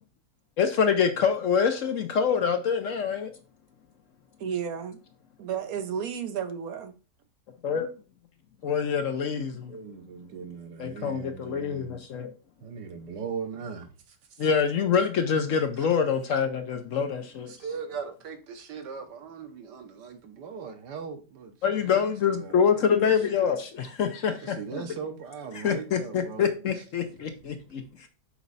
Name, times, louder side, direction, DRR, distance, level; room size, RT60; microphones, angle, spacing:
voice 1, 0.6-3.3 7.6-7.9 8.6-9.7 10.8-12.3 14.4-17.5 21.6-24.8 25.6-28.1, left 7 dB, 60° left, 0.9 m, -26 dB
voice 2, 4.4-5.0 5.4-6.9, right 7 dB, 65° right, 1.1 m, -32 dB
voice 3, 9.6-12.0 12.6-14.5 15.8-15.9 17.5-23.4 24.3-26.5 26.7-26.8, right 6 dB, 90° right, 1.6 m, -40 dB
6.0 x 4.3 x 4.0 m
omnidirectional pair, 1.8 m